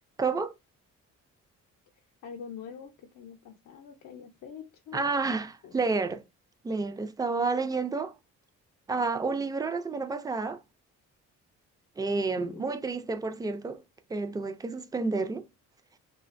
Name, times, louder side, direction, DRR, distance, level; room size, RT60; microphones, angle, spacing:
voice 1, 0.2-0.5 4.9-6.2 6.6-8.1 8.9-10.6 12.0-13.8 14.1-15.4, right 4 dB, 15° right, 0.3 m, -30 dB
voice 2, 2.2-5.1 5.6-5.8 12.1-12.7, left 7 dB, 75° left, 0.6 m, -45 dB
2.4 x 2.2 x 2.5 m
cardioid pair, 90°, 30 cm